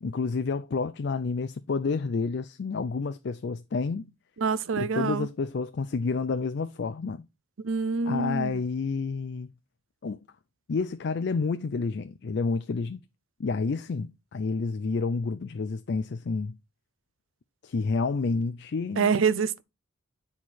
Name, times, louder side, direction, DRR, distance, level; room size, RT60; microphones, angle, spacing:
voice 1, 0.0-4.1 4.7-7.3 8.0-9.5 10.0-10.2 10.7-13.0 13.4-16.5 17.6-19.1, left 4 dB, 55° left, 0.4 m, -29 dB
voice 2, 4.4-5.3 7.6-8.6 19.0-19.6, right 5 dB, 85° right, 0.5 m, -26 dB
9.4 x 4.3 x 4.6 m
head